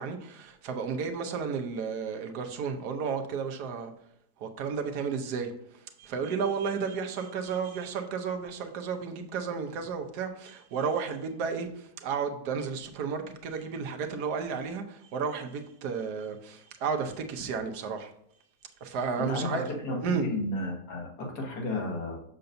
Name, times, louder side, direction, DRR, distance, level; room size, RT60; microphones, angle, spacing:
voice 1, 0.0-3.9 4.4-5.5 6.0-18.1 18.8-19.6 20.0-20.3, right 5 dB, 90° right, 1.3 m, -32 dB
voice 2, 19.2-22.2, left 2 dB, 85° left, 1.9 m, -33 dB
6.7 x 6.6 x 2.6 m
omnidirectional pair, 1.7 m